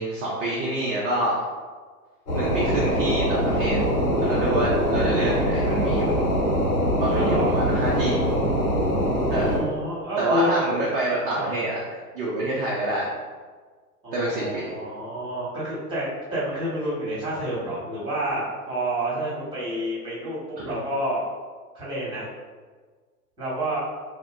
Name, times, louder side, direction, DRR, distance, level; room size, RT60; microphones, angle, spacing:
voice 1, 0.0-1.4 2.3-3.8 4.2-6.2 7.0-8.2 9.3-9.5 10.2-11.8 12.1-13.1 14.1-14.7, right 1 dB, 35° right, -5 dB, 0.6 m, -26 dB
sound 1, 2.3-9.6, equal, 85° left, 1.4 m, -23 dB
voice 2, 7.1-7.7 9.3-10.6 11.3-11.4 14.0-21.2 21.7-22.3 23.4-23.8, right 1 dB, 10° right, -8 dB, 1.2 m, -29 dB
2.7 x 2.1 x 3.6 m, 1.5 s
hypercardioid pair, 110°, 47 cm